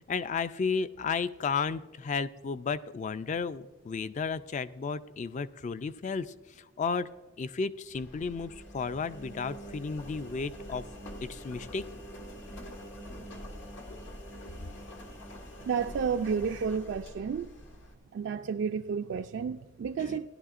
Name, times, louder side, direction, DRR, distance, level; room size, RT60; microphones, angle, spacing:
voice 1, 0.1-7.1 7.4-10.8 11.2-11.8 20.0-20.2, left 5 dB, 35° left, 0.3 m, -33 dB
Engine, 7.9-17.9, equal, 70° left, 1.6 m, -45 dB
voice 2, 15.7-17.5 18.1-20.3, right 6 dB, 60° right, 0.3 m, -31 dB
16.0 x 11.0 x 2.5 m
head